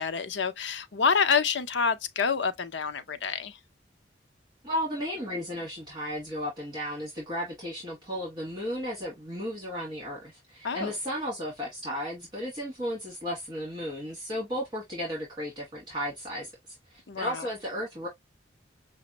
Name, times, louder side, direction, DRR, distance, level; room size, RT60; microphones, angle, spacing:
voice 1, 0.0-3.6 10.6-11.0 17.1-17.5, left 5 dB, 70° left, 0.6 m, -27 dB
voice 2, 4.6-16.5 16.9-18.1, equal, 25° right, 1.9 m, -34 dB
5.9 x 2.1 x 2.8 m
head